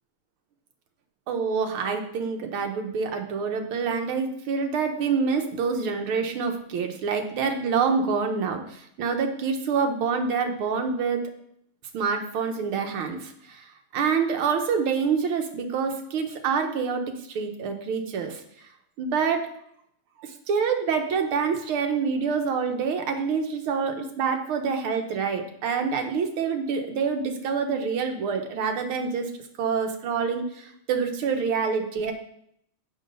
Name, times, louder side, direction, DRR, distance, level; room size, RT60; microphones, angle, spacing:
voice 1, 1.3-11.2 11.9-13.7 13.9-18.4 19.0-19.5 20.2-29.3 29.6-32.1, right 5 dB, 75° right, 5 dB, 1.9 m, -26 dB
7.2 x 6.4 x 5.3 m, 0.72 s
omnidirectional pair, 2.4 m